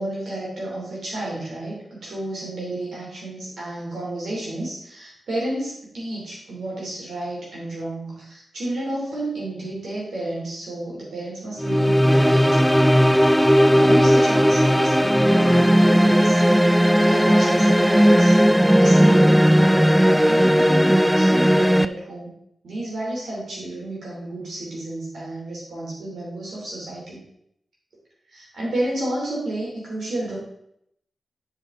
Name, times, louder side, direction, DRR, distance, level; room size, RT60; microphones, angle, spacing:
voice 1, 0.0-18.4 18.7-22.3 22.6-27.2 28.3-30.4, right 1 dB, 80° right, -5 dB, 3.0 m, -31 dB
sound 1, 11.6-21.9, equal, ahead, 0.3 m, -16 dB
9.1 x 5.0 x 3.7 m, 0.74 s
cardioid pair, 65°, 0 cm